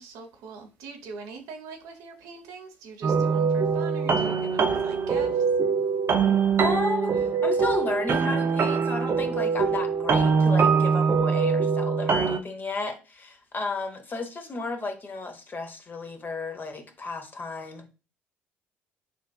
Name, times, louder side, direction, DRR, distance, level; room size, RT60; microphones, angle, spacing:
voice 1, 0.0-5.4, right 4 dB, 65° right, 0.8 m, -42 dB
sound 1, 3.0-12.4, right 5 dB, 40° right, 0.5 m, -23 dB
voice 2, 6.6-17.9, left 3 dB, 30° left, 0.8 m, -33 dB
6.0 x 2.5 x 2.3 m
hypercardioid pair, 55°, 6 cm